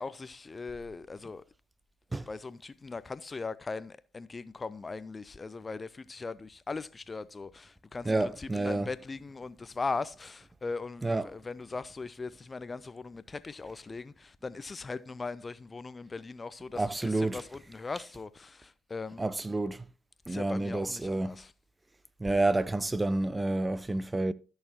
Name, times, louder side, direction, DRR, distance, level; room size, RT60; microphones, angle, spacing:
voice 1, 0.0-1.4 2.3-19.3 20.3-21.5, left 4 dB, 30° left, 0.5 m, -39 dB
voice 2, 8.0-8.9 11.0-11.3 16.7-17.4 19.2-19.8 20.3-21.4 22.2-24.3, right 2 dB, 15° right, 0.6 m, -29 dB
13.5 x 6.5 x 3.0 m
hypercardioid pair, 55°, 0 cm